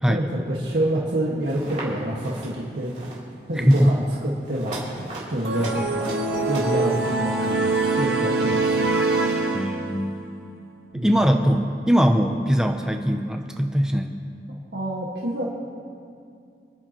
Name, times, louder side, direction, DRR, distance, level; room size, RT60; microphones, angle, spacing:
voice 1, 0.1-3.2 3.5-5.8 6.5-9.0 10.9-11.1 14.7-15.4, right 1 dB, 85° right, -5 dB, 1.6 m, -27 dB
sound 1, 1.5-1.9 2.2-2.5 2.8-3.2 3.5-3.9 4.4-7.6, right 1 dB, 40° right, 3.2 m, -37 dB
sound 2, 5.4-10.1, right 3 dB, 65° right, 1.5 m, -24 dB
voice 2, 9.5-10.3 10.9-14.2, equal, 5° right, 3 dB, 0.5 m, -21 dB
26.5 x 10.0 x 3.0 m, 2.4 s
head